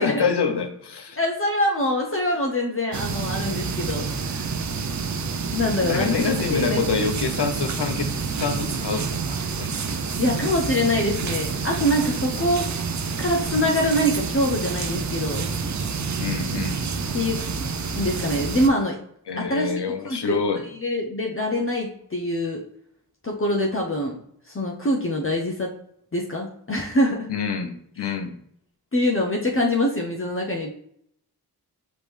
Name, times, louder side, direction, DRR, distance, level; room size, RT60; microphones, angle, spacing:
voice 1, 0.0-1.2 5.8-8.1 8.4-9.8 16.2-16.8 19.3-20.6 27.3-28.3, left 5 dB, 75° left, 6 dB, 0.9 m, -26 dB
voice 2, 1.2-4.5 5.5-6.8 10.2-12.7 13.2-15.4 17.1-19.0 19.4-19.7 20.0-20.4 20.8-22.6 23.2-24.2 24.4-25.7 26.1-27.3 28.0-28.1 28.9-30.7, left 1 dB, 30° left, -1 dB, 0.8 m, -24 dB
sound 1, 2.9-18.7, right 5 dB, 45° right, 0.5 m, -28 dB
5.0 x 3.2 x 3.3 m, 0.68 s
cardioid pair, 45°, 40 cm